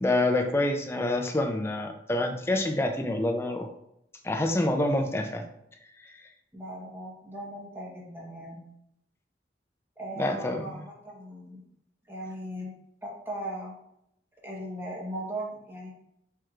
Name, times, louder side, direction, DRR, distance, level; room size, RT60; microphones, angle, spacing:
voice 1, 0.0-3.7 4.2-5.4 6.0-6.1 10.2-10.7, left 1 dB, 15° left, 4 dB, 0.4 m, -27 dB
voice 2, 6.5-8.6 10.0-11.6 12.1-12.7 13.0-13.7 14.4-15.9, right 1 dB, 10° right, -3 dB, 1.1 m, -38 dB
4.6 x 4.5 x 2.4 m, 0.76 s
head